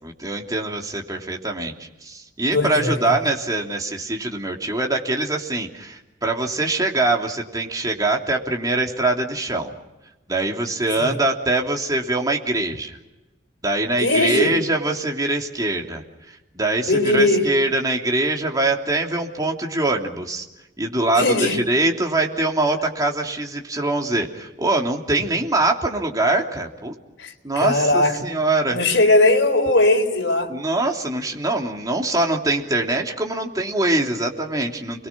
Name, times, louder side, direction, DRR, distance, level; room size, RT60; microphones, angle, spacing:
voice 1, 0.0-9.7 10.3-13.0 13.6-20.4 20.8-26.9 27.4-28.8 30.5-35.1, right 2 dB, 20° right, 3.1 m, -23 dB
voice 2, 2.5-3.0 11.0-11.2 14.0-14.6 16.9-17.5 21.2-21.6 27.2-28.2 28.7-30.5, left 2 dB, 70° left, 4.1 m, -19 dB
30.0 x 22.5 x 6.1 m
head